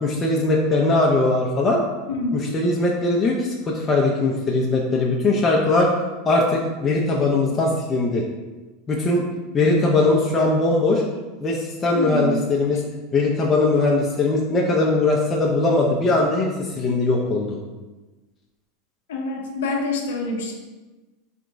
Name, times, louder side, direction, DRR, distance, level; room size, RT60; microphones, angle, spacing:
voice 1, 0.0-1.8 2.3-5.9 6.3-8.2 8.9-9.2 9.5-11.0 11.4-12.8 13.1-17.6, left 2 dB, 25° left, -2 dB, 0.4 m, -20 dB
voice 2, 2.1-2.6 11.9-12.4 19.1-20.5, left 2 dB, 85° left, 1 dB, 0.5 m, -26 dB
3.4 x 2.9 x 2.5 m, 1.2 s
supercardioid pair, 120°, 0 cm